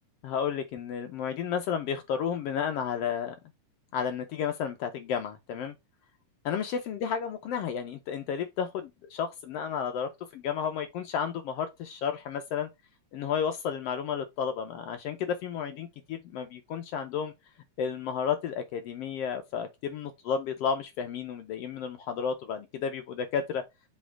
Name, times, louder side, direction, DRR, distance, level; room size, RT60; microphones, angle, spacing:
voice 1, 0.2-3.3 3.9-5.7 6.4-12.7 13.1-17.3 17.8-23.6, left 7 dB, 80° left, 1.4 m, -32 dB
6.4 x 3.4 x 4.6 m
omnidirectional pair, 3.5 m